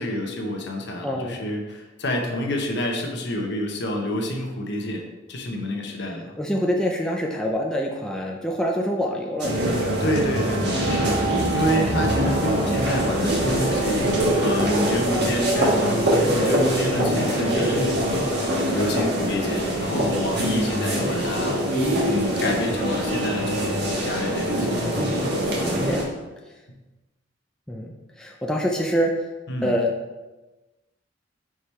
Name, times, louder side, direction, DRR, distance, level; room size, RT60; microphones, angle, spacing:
voice 1, 0.0-6.3 10.0-14.1 14.4-24.7 29.5-29.7, left 1 dB, 60° left, 2 dB, 1.0 m, -28 dB
voice 2, 1.0-1.4 6.4-9.8 11.7-11.9 16.9-17.4 25.5-26.1 27.7-27.9 28.2-29.1 29.6-29.9, equal, 5° left, -1 dB, 0.5 m, -26 dB
sound 1, 9.4-26.0, right 1 dB, 60° right, 1.4 m, -23 dB
5.1 x 4.7 x 4.3 m, 1.1 s
head